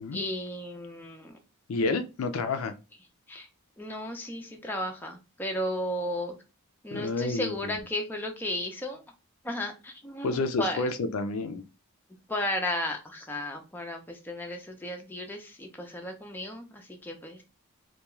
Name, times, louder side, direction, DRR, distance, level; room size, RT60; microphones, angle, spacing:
voice 1, 0.1-1.4 3.3-3.5 3.8-6.3 6.8-9.0 9.4-10.8 12.3-17.4, left 1 dB, 10° left, 3 dB, 0.4 m, -34 dB
voice 2, 1.7-2.7 6.9-7.6 10.2-11.6, left 3 dB, 70° left, 9 dB, 0.4 m, -29 dB
2.3 x 2.3 x 3.0 m, 0.30 s
head